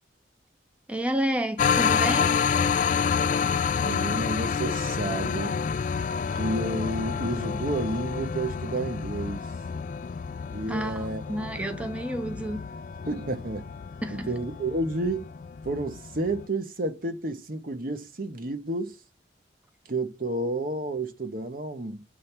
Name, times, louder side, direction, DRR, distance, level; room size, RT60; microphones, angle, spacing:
voice 1, 0.9-2.3 10.7-12.6 14.0-14.3, right 1 dB, 5° right, 0.6 m, -30 dB
sound 1, 1.6-16.5, left 6 dB, 45° left, 0.3 m, -29 dB
voice 2, 3.8-5.6 6.3-9.5 10.5-11.8 13.0-13.7 14.1-15.3 15.6-19.0 19.9-22.0, right 2 dB, 55° right, 1.0 m, -31 dB
7.6 x 3.4 x 5.8 m
head